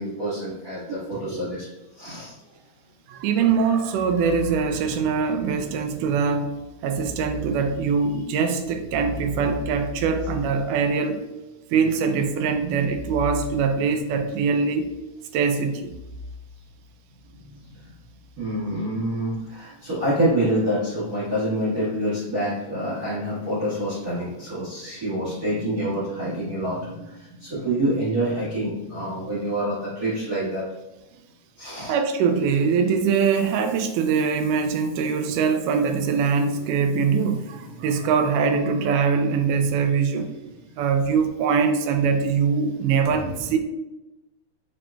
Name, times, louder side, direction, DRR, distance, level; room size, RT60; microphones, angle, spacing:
voice 1, 0.0-1.6 2.0-2.4 17.4-17.8 18.4-30.6 31.6-31.9 43.1-43.3, right 1 dB, 40° right, -12 dB, 1.4 m, -27 dB
voice 2, 3.1-6.5 6.8-11.2 11.7-14.9 15.3-15.9 31.9-40.3 40.8-43.6, right 5 dB, 80° right, 6 dB, 2.0 m, -22 dB
5.9 x 3.7 x 2.3 m, 1.0 s
omnidirectional pair, 3.7 m